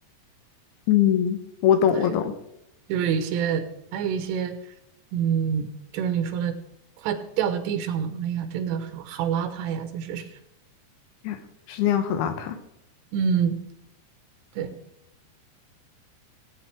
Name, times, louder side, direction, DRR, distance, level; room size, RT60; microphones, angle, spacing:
voice 1, 0.9-2.3 11.2-11.4 11.7-12.6, left 9 dB, 75° left, 8 dB, 2.6 m, -22 dB
voice 2, 2.9-3.6 3.9-4.6 5.1-6.5 7.0-10.3 13.1-13.6 14.6-14.8, right 7 dB, 85° right, 9 dB, 3.3 m, -26 dB
18.5 x 8.9 x 3.5 m, 0.80 s
omnidirectional pair, 4.9 m